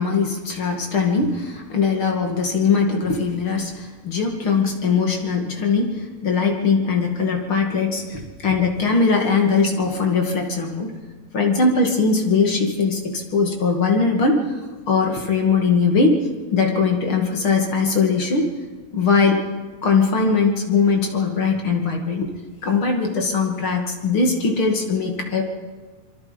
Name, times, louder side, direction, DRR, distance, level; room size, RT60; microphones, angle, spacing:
voice 1, 0.0-10.9 11.3-14.4 14.9-16.2 16.5-18.5 18.9-19.4 19.8-22.3 22.6-25.4, left 4 dB, 40° left, 2 dB, 2.8 m, -20 dB
26.5 x 23.5 x 5.3 m, 1.4 s
omnidirectional pair, 4.0 m